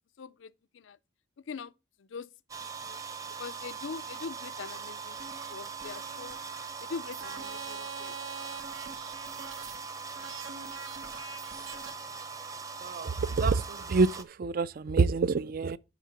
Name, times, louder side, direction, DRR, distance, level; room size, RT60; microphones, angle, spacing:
voice 1, 0.2-1.0 1.5-1.7 2.0-2.3 2.6-3.0 3.4-5.2 5.5-6.4 6.8-8.1, left 5 dB, 70° left, 0.5 m, -42 dB
sound 1, 2.5-14.2, right 5 dB, 15° right, 0.7 m, -41 dB
sound 2, 5.2-11.9, right 5 dB, 90° right, 1.2 m, -45 dB
voice 2, 12.8-15.8, right 4 dB, 45° right, 0.4 m, -27 dB
10.0 x 3.7 x 5.7 m
head